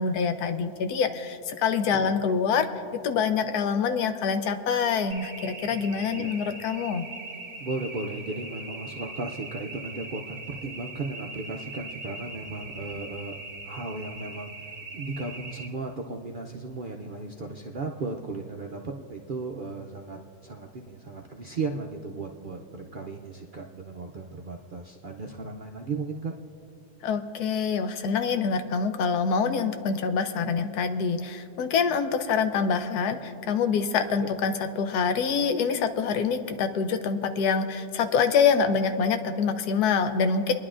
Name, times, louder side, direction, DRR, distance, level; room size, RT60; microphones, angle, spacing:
voice 1, 0.0-2.7 3.0-7.1 27.0-40.5, left 6 dB, 90° left, 9 dB, 1.2 m, -25 dB
sound 1, 5.1-15.7, right 3 dB, 40° right, 0.8 m, -41 dB
voice 2, 5.7-6.3 7.6-13.4 13.6-26.3 34.2-34.3, right 3 dB, 70° right, 1 dB, 0.4 m, -36 dB
29.5 x 10.5 x 2.5 m, 2.6 s
omnidirectional pair, 1.6 m